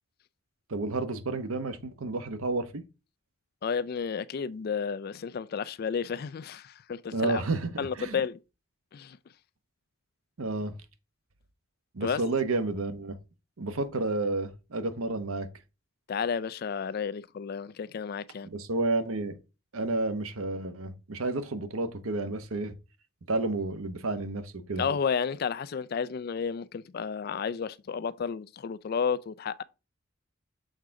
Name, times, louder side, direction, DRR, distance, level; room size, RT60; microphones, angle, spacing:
voice 1, 0.7-2.8 7.1-8.2 10.4-10.7 11.9-13.2 13.6-15.5 18.5-19.4 19.7-22.7 23.3-24.8, right 2 dB, 90° right, 0.9 m, -31 dB
voice 2, 3.6-7.4 7.8-8.4 8.9-9.2 12.0-12.2 16.1-18.5 24.8-29.6, left 6 dB, 45° left, 0.3 m, -32 dB
6.5 x 3.8 x 4.6 m
head